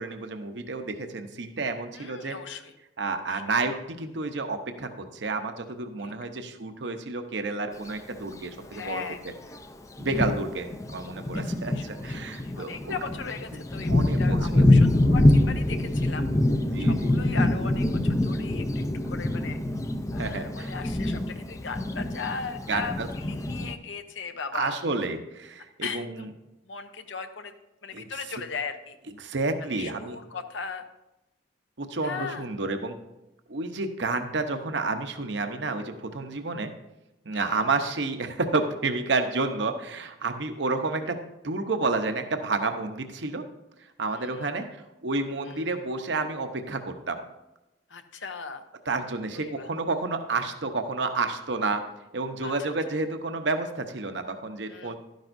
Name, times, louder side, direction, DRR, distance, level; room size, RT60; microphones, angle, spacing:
voice 1, 0.0-2.4 3.0-9.0 10.0-12.9 13.9-14.7 16.5-17.1 20.2-20.7 22.7-23.1 24.5-26.3 27.9-28.1 29.2-30.2 31.8-33.0 33.5-36.7 37.2-41.2 41.4-43.4 44.0-47.2 48.9-51.8 52.1-55.0, right 3 dB, 65° right, 6 dB, 0.9 m, -30 dB
voice 2, 1.9-2.7 3.2-3.4 6.0-6.1 8.7-9.2 11.7-16.3 16.8-19.6 20.1-24.8 25.8-26.3 26.6-27.5 27.8-29.0 29.6-30.8 32.0-32.5 37.3-37.6 44.1-44.5 45.4-45.6 47.9-48.6 49.3-49.7 52.4-52.7 54.7-55.0, left 5 dB, 75° left, 8 dB, 0.8 m, -38 dB
Thunder, 7.7-7.9 8.8-8.9 9.5-9.6 10.0-23.8, left 1 dB, 15° left, 0.5 m, -25 dB
12.0 x 10.5 x 2.6 m, 0.94 s
head